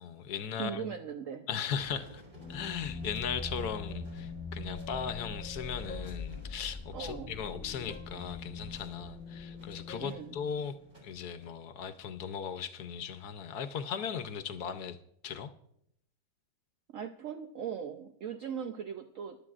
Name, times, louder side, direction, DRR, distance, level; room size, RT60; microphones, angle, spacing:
voice 1, 0.0-0.9 1.5-2.2 2.5-10.7 11.0-15.0 15.2-15.5, left 7 dB, 70° left, 10 dB, 1.2 m, -37 dB
voice 2, 0.6-1.5 6.9-7.4 10.0-10.4 16.9-19.4, right 8 dB, 60° right, 5 dB, 0.9 m, -39 dB
sound 1, 1.8-11.5, left 1 dB, 30° right, 3.8 m, -56 dB
sound 2, 2.3-10.8, left 3 dB, 10° left, 0.8 m, -42 dB
21.5 x 11.5 x 2.4 m, 0.74 s
omnidirectional pair, 1.8 m